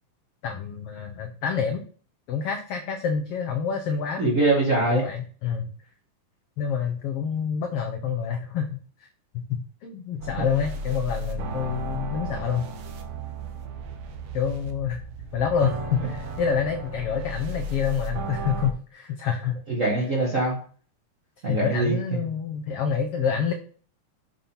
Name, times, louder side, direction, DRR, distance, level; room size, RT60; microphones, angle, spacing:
voice 1, 0.4-1.8 2.3-4.4 4.9-5.7 6.6-9.1 9.3-12.6 14.3-15.0 15.3-19.6 21.5-23.5, left 7 dB, 90° left, 4 dB, 1.3 m, -27 dB
voice 2, 4.2-5.1 19.7-20.6 21.4-22.2, right 2 dB, 40° right, -3 dB, 1.1 m, -23 dB
sound 1, 10.2-18.7, right 2 dB, 80° right, 1.2 m, -34 dB
7.4 x 3.8 x 5.5 m, 0.41 s
omnidirectional pair, 3.7 m